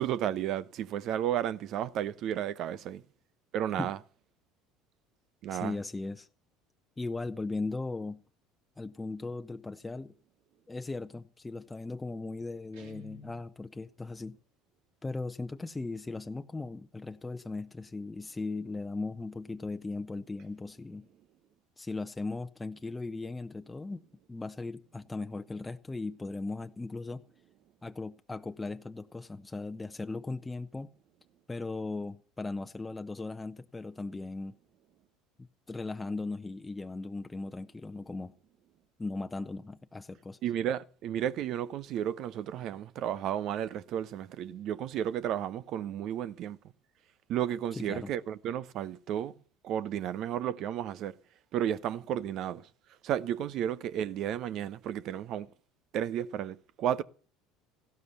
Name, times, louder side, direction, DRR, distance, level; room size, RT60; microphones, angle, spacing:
voice 1, 0.0-3.0 3.5-4.0 5.4-5.7 40.4-46.6 47.3-49.3 49.6-51.2 51.5-52.7 53.0-55.5 55.9-57.0, right 10 dB, 55° right, 0.8 m, -33 dB
voice 2, 5.5-6.3 7.0-8.2 8.8-10.1 10.7-14.4 15.0-21.1 21.8-24.0 24.3-27.2 27.8-30.9 31.5-34.5 35.4-38.3 39.0-40.4 47.8-48.1, left 3 dB, 15° left, 0.8 m, -38 dB
Guitar, 12.7-13.5, left 1 dB, 75° right, 2.5 m, -50 dB
15.5 x 12.5 x 6.8 m
hypercardioid pair, 70°, 0 cm